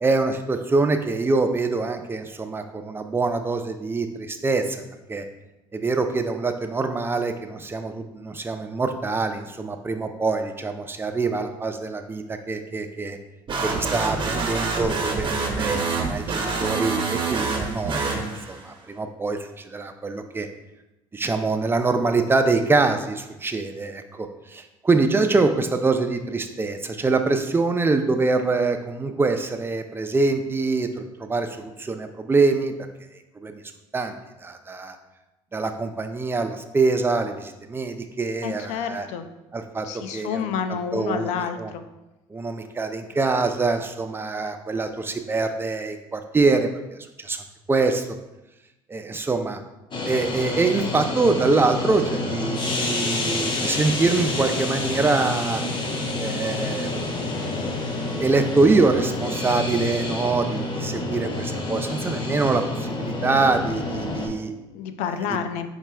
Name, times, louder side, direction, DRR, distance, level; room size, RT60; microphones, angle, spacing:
voice 1, 0.0-4.8 5.1-5.2 5.7-13.2 13.6-20.5 21.1-32.7 33.4-33.6 33.9-34.1 34.4-35.0 35.5-39.1 39.5-39.9 40.1-40.5 40.9-41.7 42.3-47.4 47.7-48.0 48.9-49.6 50.0-55.6 56.2-57.1 58.2-64.5, right 3 dB, 20° right, 7 dB, 0.5 m, -24 dB
sound 1, 13.5-18.7, right 3 dB, 40° right, 1.0 m, -26 dB
voice 2, 38.4-39.3 39.8-41.8 64.7-65.7, left 7 dB, 75° left, 9 dB, 0.4 m, -29 dB
sound 2, 49.9-64.3, left 2 dB, 40° left, 0.8 m, -28 dB
4.8 x 4.1 x 2.3 m, 0.99 s
supercardioid pair, 75°, 12 cm